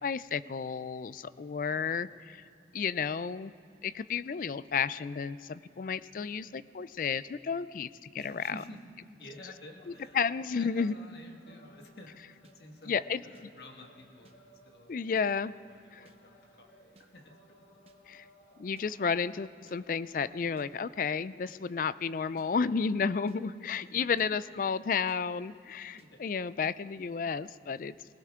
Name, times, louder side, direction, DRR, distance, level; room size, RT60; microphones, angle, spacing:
voice 1, 0.0-2.4 2.7-3.5 3.8-7.9 8.1-8.5 10.1-10.9 12.9-13.5 14.9-15.5 15.9-16.1 18.1-18.3 18.6-27.9, left 6 dB, 50° left, 16 dB, 0.4 m, -32 dB
voice 2, 1.7-2.2 8.1-8.8 9.2-14.4 14.6-14.9 15.4-16.7 17.0-17.8 23.8-24.3 25.9-26.2, left 1 dB, 65° left, 2 dB, 1.7 m, -52 dB
sound 1, 9.2-20.2, equal, 85° left, 3.8 m, -62 dB
sound 2, 12.4-12.6 13.3-13.5 14.2-14.4 15.1-15.3 16.0-16.2 17.0-17.1 17.9-18.0 18.8-18.9 19.7-19.8 20.6-20.7 21.5-21.6 22.4-22.5 23.3-23.4 24.2-24.3 25.1-25.2 26.0-26.1, right 2 dB, 35° right, 0.9 m, -60 dB
20.0 x 19.0 x 3.7 m, 2.5 s
head